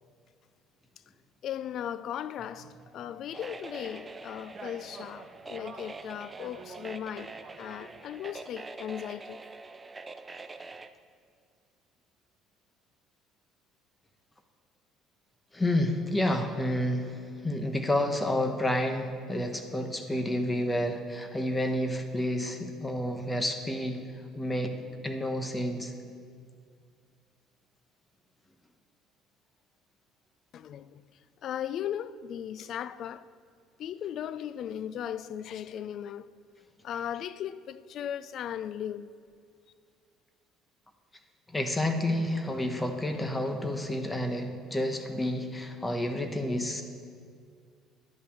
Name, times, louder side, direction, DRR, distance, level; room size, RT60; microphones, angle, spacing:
voice 1, 1.4-9.4 30.5-31.0 31.4-33.3 33.8-36.3 36.8-39.1, left 10 dB, 60° left, 0.4 m, -37 dB
sound 1, 2.4-8.4, right 4 dB, 40° right, 1.2 m, -50 dB
sound 2, 3.3-10.9, right 3 dB, 25° right, 0.5 m, -45 dB
voice 2, 15.5-24.0 24.3-24.8 25.0-25.9 41.5-46.8, left 1 dB, 15° left, 1.1 m, -30 dB
10.5 x 5.6 x 7.7 m
supercardioid pair, 85°, 0 cm